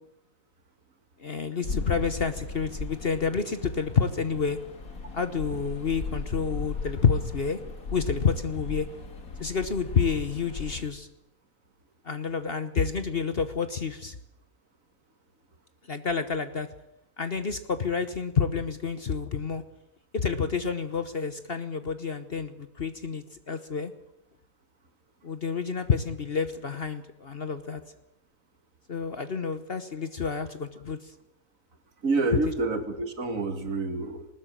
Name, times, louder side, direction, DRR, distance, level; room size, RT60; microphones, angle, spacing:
voice 1, 1.2-4.6 5.1-7.6 7.9-8.9 9.4-11.1 12.0-14.2 15.9-16.7 17.2-19.6 20.1-23.9 25.2-27.8 28.9-31.0, left 5 dB, 45° left, 10 dB, 1.1 m, -29 dB
sound 1, 1.6-10.8, left 4 dB, 65° left, 2.7 m, -37 dB
voice 2, 32.0-34.3, right 3 dB, 60° right, 7 dB, 2.4 m, -28 dB
20.0 x 19.5 x 7.5 m, 0.87 s
omnidirectional pair, 1.6 m